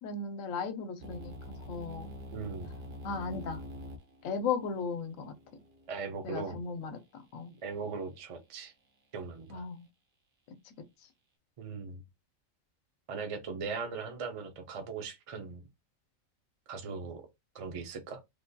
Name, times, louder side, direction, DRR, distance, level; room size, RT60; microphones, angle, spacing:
voice 1, 0.0-2.1 3.0-3.6 4.2-5.3 6.2-7.5 9.5-9.9 10.6-10.7, left 5 dB, 85° left, 1.0 m, -36 dB
sound 1, 1.0-6.9, equal, 75° right, 1.1 m, -46 dB
voice 2, 2.3-2.7 5.9-6.6 7.5-8.7 9.1-9.6 11.6-12.0 13.1-15.6 16.7-17.2 17.5-18.2, right 5 dB, 55° right, 0.3 m, -39 dB
3.3 x 2.2 x 2.6 m
omnidirectional pair, 1.4 m